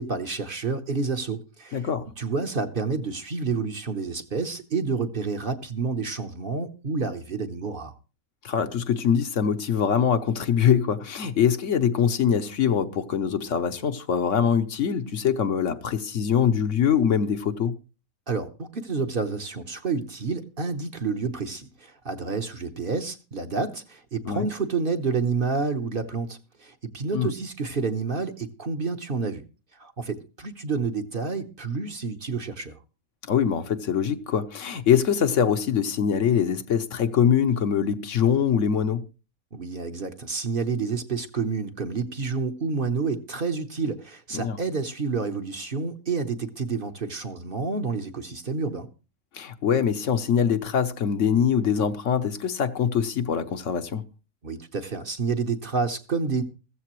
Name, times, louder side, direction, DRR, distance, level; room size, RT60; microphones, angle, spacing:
voice 1, 0.0-1.9 2.2-7.9 18.3-29.4 29.7-32.8 39.5-48.9 54.4-56.4, right 4 dB, 45° right, 1.1 m, -29 dB
voice 2, 1.7-2.1 8.4-17.7 24.2-24.5 27.1-27.3 33.3-39.0 44.3-44.6 49.3-54.0, left 8 dB, 65° left, 1.1 m, -23 dB
15.5 x 14.0 x 3.1 m
omnidirectional pair, 1.5 m